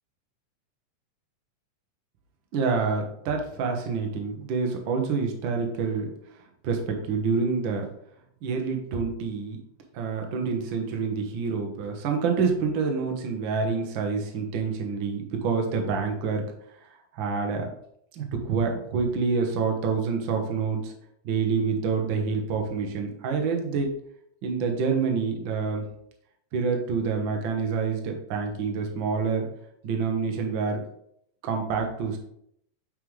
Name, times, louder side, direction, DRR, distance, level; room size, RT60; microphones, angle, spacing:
voice 1, 2.5-6.1 6.6-7.9 8.4-9.6 9.9-16.4 17.1-17.7 18.1-20.9 21.2-23.9 24.4-25.9 26.5-29.5 29.8-30.8 31.4-32.2, right 5 dB, 85° right, 2 dB, 1.0 m, -27 dB
7.5 x 5.0 x 3.2 m, 0.72 s
omnidirectional pair, 3.7 m